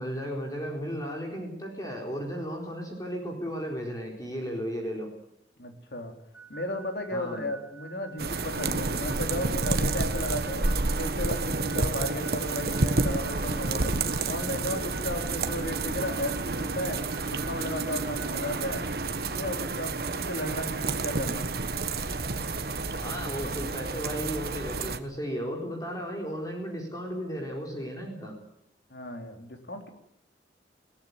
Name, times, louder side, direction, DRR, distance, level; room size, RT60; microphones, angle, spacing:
voice 1, 0.0-5.1 7.1-7.5 23.0-28.3, equal, 20° left, 0 dB, 4.4 m, -35 dB
voice 2, 5.6-6.1 6.5-10.7 11.0-13.9 14.3-17.0 17.3-18.9 19.3-19.9 20.3-21.5 28.9-29.9, left 1 dB, 65° left, 4 dB, 3.8 m, -34 dB
sound 1, 6.3-19.0, right 4 dB, 5° right, 2.2 m, -50 dB
sound 2, 8.2-25.0, right 3 dB, 55° right, 1.4 m, -30 dB
21.5 x 17.5 x 9.6 m, 0.79 s
head